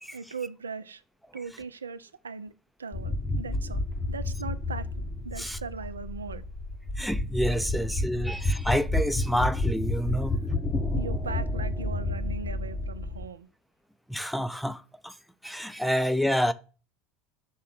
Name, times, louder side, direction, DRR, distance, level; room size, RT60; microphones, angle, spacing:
voice 1, 0.1-1.0 1.3-2.5 2.8-3.8 4.1-6.4 10.9-13.5, right 5 dB, 85° right, 0.4 m, -39 dB
sound 1, 2.9-13.3, left 2 dB, 20° left, 1.0 m, -30 dB
voice 2, 7.0-10.4 14.1-15.2 15.4-16.5, equal, ahead, 0.6 m, -28 dB
6.2 x 3.7 x 5.8 m
hypercardioid pair, 75°, 0 cm